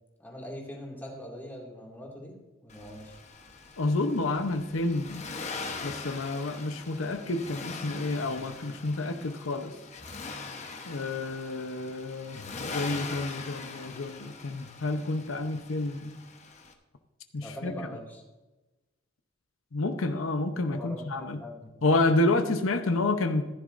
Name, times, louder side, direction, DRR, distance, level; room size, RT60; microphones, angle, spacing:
voice 1, 0.2-2.4 2.6-3.2 17.4-18.2 20.7-21.8, left 1 dB, 10° left, -2 dB, 2.2 m, -42 dB
Accelerating revving vroom, 2.7-16.7, left 4 dB, 35° left, 1.0 m, -42 dB
voice 2, 3.8-5.2 5.8-9.8 10.8-16.1 17.3-17.7 19.7-21.4 21.8-23.4, left 2 dB, 85° left, 7 dB, 0.8 m, -29 dB
15.0 x 10.5 x 2.6 m, 1.1 s
head